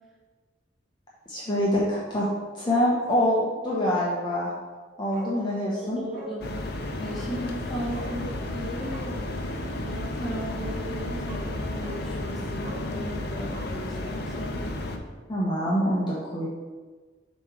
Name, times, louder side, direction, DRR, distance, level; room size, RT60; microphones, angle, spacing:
voice 1, 1.3-2.3 2.5-4.5 5.0-6.0 15.3-16.5, equal, 25° left, -6 dB, 0.9 m, -25 dB
Bark, 5.1-5.4 5.7-5.8 6.1-6.4 7.0-7.3 7.9-8.2 8.8-9.1 10.7-10.8 11.2-11.5 11.8-12.0 12.6-12.9 13.4-14.5 14.8-14.9, right 1 dB, 45° right, 1.1 m, -44 dB
voice 2, 5.7-6.5 6.9-9.3 9.6-14.6, right 1 dB, ahead, -7 dB, 1.5 m, -36 dB
sound 1, 6.4-15.0, left 2 dB, 55° left, 0.6 m, -32 dB
7.2 x 3.1 x 4.8 m, 1.4 s
head